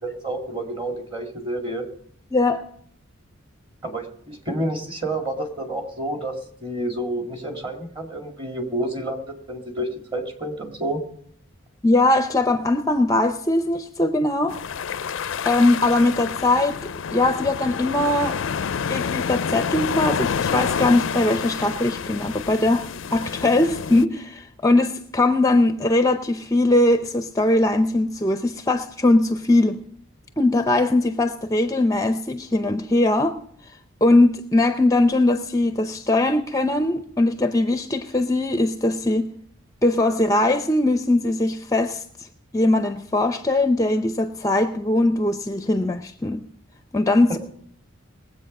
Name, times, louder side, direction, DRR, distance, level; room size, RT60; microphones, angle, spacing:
voice 1, 0.0-1.9 3.8-6.3 6.6-11.0, right 1 dB, 25° right, 2.2 m, -29 dB
voice 2, 2.3-2.6 11.8-14.6 15.5-16.8 17.1-18.4 18.9-29.8 30.4-33.4 34.0-39.3 39.8-42.3 42.5-46.5 46.9-47.4, left 2 dB, 15° left, 0.6 m, -20 dB
sound 1, 14.5-24.0, left 6 dB, 60° left, 0.4 m, -28 dB
20.5 x 8.1 x 5.4 m
head